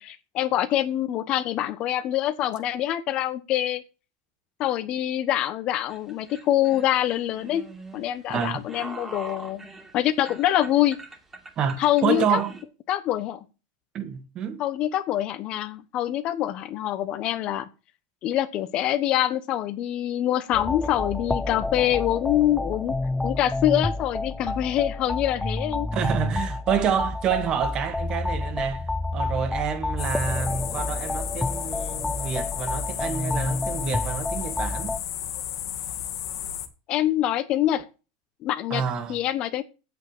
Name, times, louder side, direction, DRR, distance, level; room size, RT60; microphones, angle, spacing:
voice 1, 0.0-3.8 4.6-7.7 7.9-9.7 9.9-11.0 11.8-12.4 12.9-13.4 14.6-17.7 18.2-22.9 23.2-25.9 36.9-37.9 38.4-38.8 39.1-39.6, left 12 dB, 45° left, 1.1 m, -25 dB
sound 1, 5.9-12.6, right 3 dB, 15° right, 2.4 m, -42 dB
voice 2, 8.3-8.6 11.6-12.5 13.9-14.6 25.9-35.0 38.7-39.2, right 7 dB, 35° right, 2.0 m, -28 dB
sound 2, 20.5-35.0, left 2 dB, 5° left, 0.4 m, -29 dB
sound 3, 30.0-36.7, left 10 dB, 85° left, 1.8 m, -33 dB
8.4 x 7.4 x 7.4 m
supercardioid pair, 125°, 2 cm